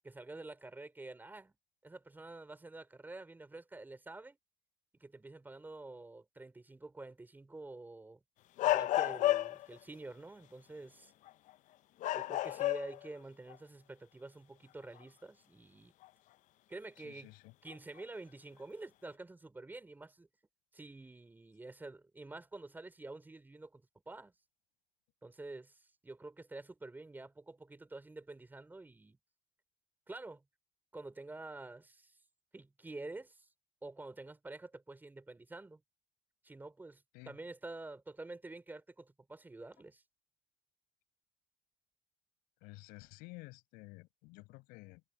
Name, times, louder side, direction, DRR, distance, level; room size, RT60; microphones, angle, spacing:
voice 1, 0.0-1.5 1.8-4.4 5.0-8.2 8.6-11.1 12.1-15.9 16.7-17.3 17.6-20.3 20.7-24.3 25.2-29.2 30.1-30.4 30.9-32.2 32.5-33.5 33.8-35.8 36.4-40.0, right 2 dB, 15° right, 5.0 m, -48 dB
sound 1, 8.6-9.8 11.3-11.5 12.0-13.1 13.5-13.6 16.0-16.1 17.7-18.0, left 14 dB, 60° left, 0.7 m, -31 dB
voice 2, 17.0-17.5 37.1-37.3 42.6-45.0, left 24 dB, 90° left, 7.6 m, -52 dB
cardioid pair, 125°, 15 cm